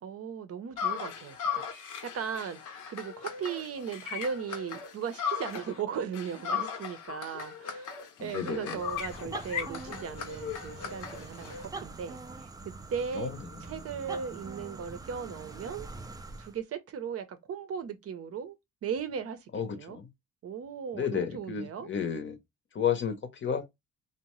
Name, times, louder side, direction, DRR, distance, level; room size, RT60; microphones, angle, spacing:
voice 1, 0.0-7.9 8.2-12.5 12.9-13.3 13.6-15.9 16.4-18.6 18.8-20.0 20.4-21.9, right 7 dB, 50° right, 0.6 m, -37 dB
sound 1, 0.8-5.8 6.1-11.7, left 7 dB, 80° left, 0.8 m, -37 dB
voice 2, 8.2-8.8 13.1-13.4 19.5-20.0 20.9-22.4 22.7-23.7, left 7 dB, 40° left, 0.7 m, -32 dB
sound 2, 8.7-16.6, right 3 dB, 15° right, 0.3 m, -44 dB
2.7 x 2.1 x 2.9 m
cardioid pair, 90°, 30 cm